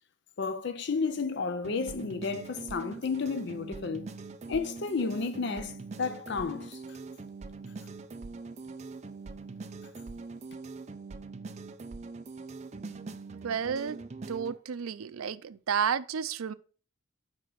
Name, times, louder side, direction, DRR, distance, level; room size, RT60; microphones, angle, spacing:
voice 1, 0.4-4.1 4.5-6.8, left 4 dB, 55° left, 0.5 m, -32 dB
sound 1, 1.6-14.6, right 3 dB, 30° right, 0.4 m, -43 dB
voice 2, 13.4-14.0 14.3-16.5, right 7 dB, 90° right, 0.5 m, -31 dB
5.0 x 4.8 x 6.3 m
head